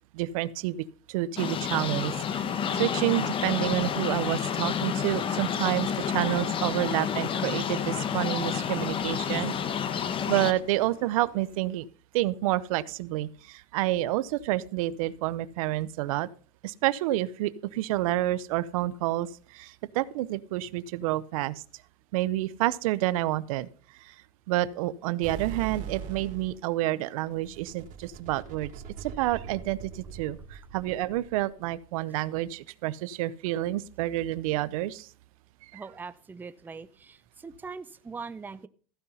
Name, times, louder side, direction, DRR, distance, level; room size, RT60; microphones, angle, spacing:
voice 1, 0.1-9.5 10.3-11.9 12.1-16.3 16.6-19.3 19.5-21.5 22.1-23.7 24.5-28.7 29.0-35.1 35.7-35.8, right 15 dB, 75° right, 18 dB, 0.7 m, -29 dB
Morning Birds & seagulls, 1.4-10.5, left 7 dB, 30° left, 1.0 m, -29 dB
sound 1, 6.8-11.7, left 4 dB, 50° left, 3.3 m, -49 dB
sound 2, 25.2-26.6 27.3-31.5, right 7 dB, 45° right, 3.0 m, -41 dB
voice 2, 35.7-38.7, right 5 dB, 10° right, 13 dB, 0.5 m, -41 dB
15.0 x 5.6 x 5.5 m, 0.42 s
supercardioid pair, 125°, 18 cm